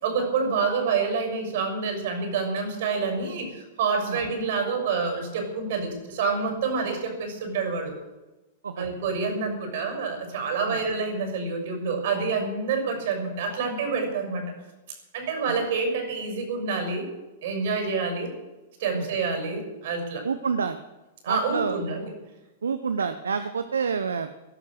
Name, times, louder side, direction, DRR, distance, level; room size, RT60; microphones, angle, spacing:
voice 1, 0.0-7.9 8.8-14.4 15.1-17.1 17.4-18.3 18.8-20.2 21.2-22.1, right 4 dB, 60° right, 5 dB, 6.4 m, -27 dB
voice 2, 20.2-20.8 21.3-21.8 22.6-24.5, right 6 dB, 80° right, 10 dB, 0.8 m, -28 dB
17.0 x 12.0 x 6.5 m, 1.1 s
figure-of-eight pair, 100°, 0 cm